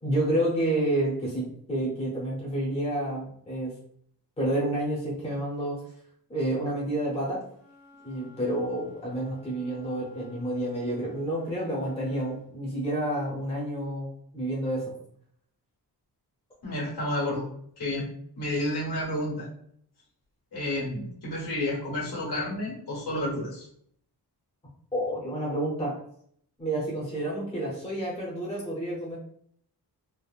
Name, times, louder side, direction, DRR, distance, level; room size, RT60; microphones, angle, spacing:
voice 1, 0.0-3.7 4.4-5.8 6.3-7.4 8.0-14.1 14.3-14.8 24.9-26.0 26.6-29.2, right 1 dB, 15° left, -5 dB, 0.7 m, -29 dB
Wind instrument woodwind instrument, 7.4-12.4, left 1 dB, 40° left, 0.9 m, -55 dB
voice 2, 16.6-17.4 17.8-18.1 18.4-19.5 20.5-23.7, left 1 dB, 70° left, -5 dB, 1.4 m, -30 dB
3.4 x 2.0 x 2.4 m, 0.65 s
wide cardioid pair, 175°, 40 cm